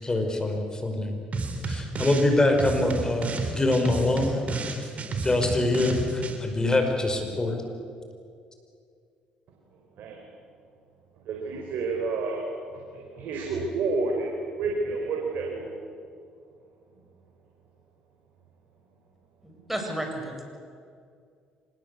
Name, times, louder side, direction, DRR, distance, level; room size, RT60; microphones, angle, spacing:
voice 1, 0.0-1.2 1.6-4.5 5.2-7.6, left 2 dB, 20° left, 5 dB, 5.3 m, -24 dB
sound 1, 1.3-2.3 2.6-6.4, right 3 dB, 45° right, 3.9 m, -31 dB
voice 2, 11.2-15.7, right 3 dB, 70° right, 0 dB, 4.4 m, -30 dB
voice 3, 19.4-20.4, right 1 dB, 5° right, 3 dB, 7.4 m, -32 dB
25.5 x 20.5 x 8.4 m, 2.3 s
supercardioid pair, 65°, 3 cm